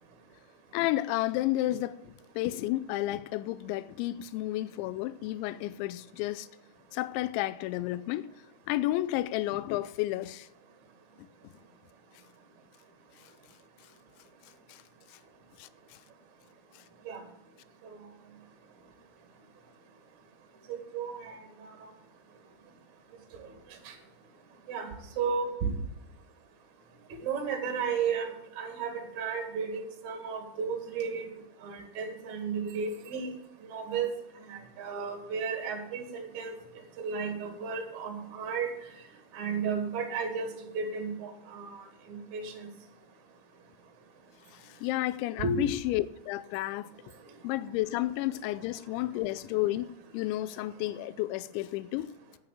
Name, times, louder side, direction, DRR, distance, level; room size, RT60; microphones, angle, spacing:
voice 1, 0.7-6.5 6.9-8.3 8.7-10.5 11.2-11.3 14.7-14.8 15.6-15.7 44.5-46.9 47.4-52.1, left 16 dB, 85° left, 2.8 m, -31 dB
voice 2, 20.9-21.7 23.8-23.9 24.7-24.9 25.2-25.7 27.2-31.3 31.6-33.3 33.7-34.1 34.5-36.5 37.0-38.7 39.3-40.5 40.7-41.8 42.1-42.5 45.4-45.7, right 5 dB, 45° right, 2.9 m, -33 dB
10.5 x 9.2 x 7.4 m
omnidirectional pair, 5.6 m